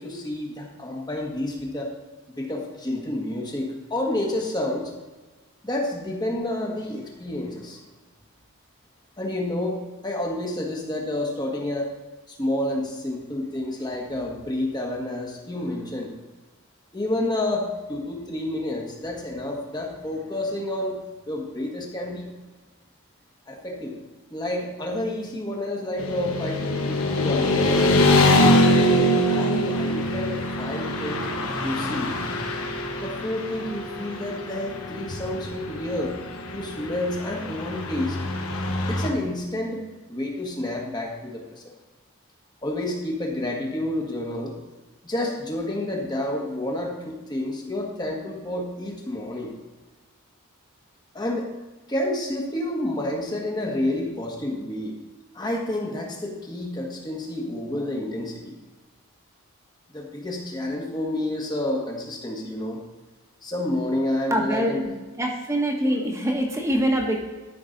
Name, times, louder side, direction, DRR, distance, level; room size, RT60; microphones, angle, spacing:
voice 1, 0.0-1.9 2.4-4.9 5.6-7.8 9.2-11.9 12.3-16.1 16.9-21.0 21.3-22.3 23.5-23.9 24.3-28.5 29.2-31.3 31.6-32.2 33.0-36.1 36.5-38.2 38.9-41.7 42.6-44.6 45.0-49.5 51.1-51.5 51.9-55.0 55.3-58.5 59.9-62.8 63.4-64.8, left 1 dB, 20° left, 0 dB, 1.5 m, -29 dB
Motorcycle / Traffic noise roadway noise, 26.0-39.1, left 1 dB, 80° left, 1.3 m, -24 dB
voice 2, 64.3-64.9 65.2-67.2, equal, 15° right, 1 dB, 1.5 m, -24 dB
13.0 x 6.0 x 4.0 m, 1.2 s
head